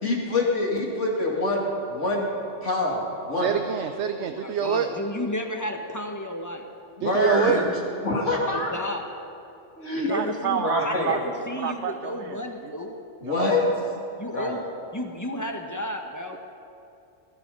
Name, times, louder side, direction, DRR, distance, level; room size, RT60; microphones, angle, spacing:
voice 1, 0.0-2.3 2.6-3.5 7.0-7.6 8.0-8.7 9.8-10.1 10.6-11.1 13.2-13.7 14.3-14.6, left 2 dB, 80° left, -3 dB, 3.0 m, -25 dB
voice 2, 3.4-4.9 7.0-7.6 10.1-11.2 11.6-12.7 13.2-13.5 16.3-16.4, right 8 dB, 70° right, 7 dB, 1.0 m, -27 dB
voice 3, 4.1-6.7 8.5-9.1 10.0-13.0 14.2-14.6 14.9-16.4, left 1 dB, 15° left, 3 dB, 1.3 m, -32 dB
20.5 x 12.0 x 5.6 m, 2.6 s
omnidirectional pair, 1.2 m